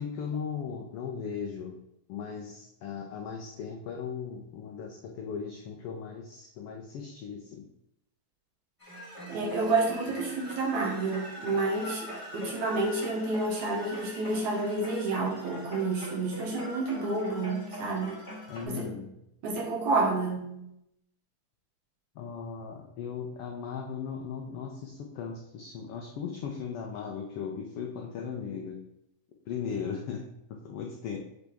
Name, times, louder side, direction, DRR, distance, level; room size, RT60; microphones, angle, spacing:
voice 1, 0.0-1.7 2.1-7.7 18.5-19.1 22.1-28.8 29.5-31.2, left 6 dB, 85° left, 1 dB, 1.3 m, -37 dB
sound 1, 8.8-18.6, left 1 dB, 20° left, 1.0 m, -42 dB
voice 2, 9.3-18.2 18.7-18.9 19.4-20.7, right 3 dB, 80° right, -3 dB, 2.8 m, -29 dB
7.3 x 4.0 x 3.4 m, 0.81 s
omnidirectional pair, 3.4 m